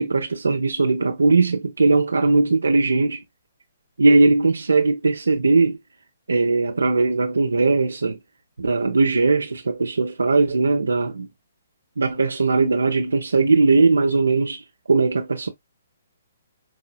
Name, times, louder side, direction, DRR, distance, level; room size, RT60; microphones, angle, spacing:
voice 1, 0.0-3.2 4.0-5.8 6.3-8.2 8.6-11.3 12.0-14.6 14.9-15.5, right 3 dB, 85° right, 0.6 m, -19 dB
4.8 x 2.7 x 2.3 m
hypercardioid pair, 140°, 0 cm